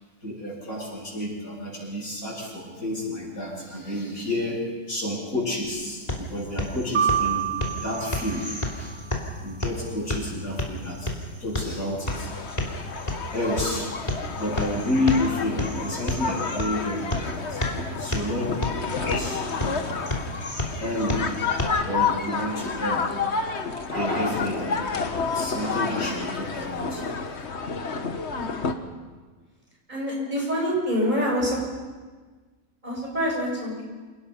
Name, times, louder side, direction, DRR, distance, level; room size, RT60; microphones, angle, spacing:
voice 1, 0.2-9.0 9.4-11.1 11.4-12.3 13.3-14.1 14.4-17.6 18.0-18.6 19.0-20.2 20.8-21.3 21.8-23.1 23.9-24.8 25.2-27.0, left 1 dB, 65° left, -4 dB, 8.3 m, -30 dB
sound 1, 5.6-21.6, left 1 dB, 25° left, 3.1 m, -32 dB
sound 2, 6.9-9.1, right 8 dB, 50° right, 1.2 m, -27 dB
sound 3, 12.1-28.7, left 5 dB, 50° left, 1.5 m, -30 dB
voice 2, 29.9-31.6 32.8-33.8, equal, 30° right, -3 dB, 7.5 m, -26 dB
28.5 x 19.0 x 5.6 m, 1.4 s
omnidirectional pair, 1.6 m